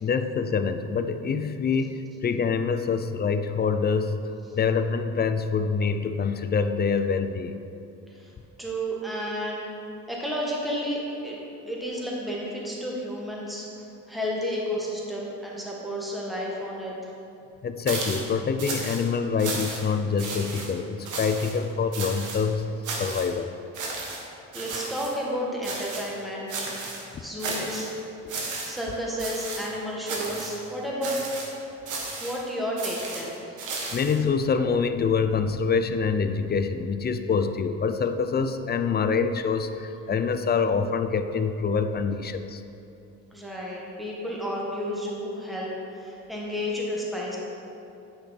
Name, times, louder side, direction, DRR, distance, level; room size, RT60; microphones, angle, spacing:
voice 1, 0.0-7.6 17.6-23.5 33.9-42.6, left 5 dB, 35° left, 9 dB, 0.5 m, -26 dB
voice 2, 8.6-9.6 10.1-11.4 11.7-13.7 14.1-17.1 24.5-26.5 27.2-27.9 28.7-31.2 32.2-33.4 43.3-45.7 45.9-47.4, equal, ahead, -4 dB, 1.5 m, -31 dB
sound 1, 17.9-18.3 18.6-19.0 19.4-19.9 20.2-20.7 21.0-21.5 21.9-22.4 22.8-23.3 23.7-24.2 24.5-25.1 25.6-26.1 26.5-27.0 27.4-27.9 28.3-28.9 29.2-29.7 30.1-30.6 31.0-31.5 31.9-32.4 32.8-34.2, right 3 dB, 80° right, 1.4 m, -34 dB
9.1 x 5.2 x 4.1 m, 2.7 s
cardioid pair, 90°, 30 cm